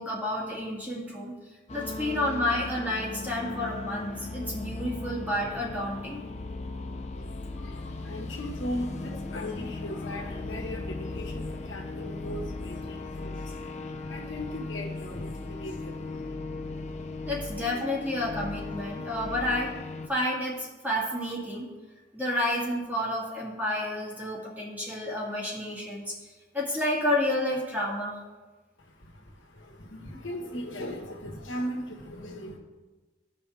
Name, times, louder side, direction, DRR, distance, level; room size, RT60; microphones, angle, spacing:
voice 1, 0.0-1.3 1.7-6.2 17.3-19.8 20.1-21.7 22.1-28.2, left 1 dB, 10° right, -4 dB, 1.9 m, -30 dB
sound 1, 1.7-20.1, left 3 dB, 35° left, 0.6 m, -37 dB
voice 2, 7.1-16.3 28.8-32.6, left 1 dB, 75° left, -1 dB, 1.6 m, -38 dB
16.0 x 5.6 x 3.5 m, 1.2 s
head